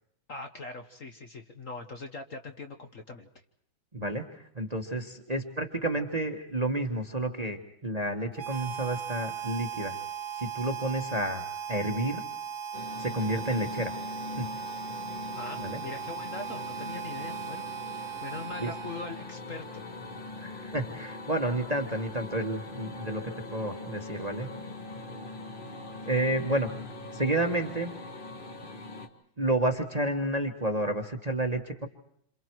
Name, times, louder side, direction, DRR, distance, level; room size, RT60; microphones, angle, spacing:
voice 1, 0.3-3.3 15.3-17.6 17.9-19.8, left 3 dB, 45° left, 5 dB, 1.4 m, -41 dB
voice 2, 3.9-10.0 10.3-11.4 11.7-12.2 13.0-13.9 14.4-14.5 15.6-15.8 18.6-18.7 20.4-24.5 26.0-26.9 27.1-27.9 29.4-31.9, right 1 dB, 20° right, 4 dB, 1.4 m, -30 dB
Harmonica, 8.3-19.4, right 7 dB, 80° right, 2.0 m, -38 dB
sound 1, 12.7-29.1, left 2 dB, 30° left, 1.5 m, -42 dB
28.0 x 27.5 x 4.7 m, 0.67 s
omnidirectional pair, 2.2 m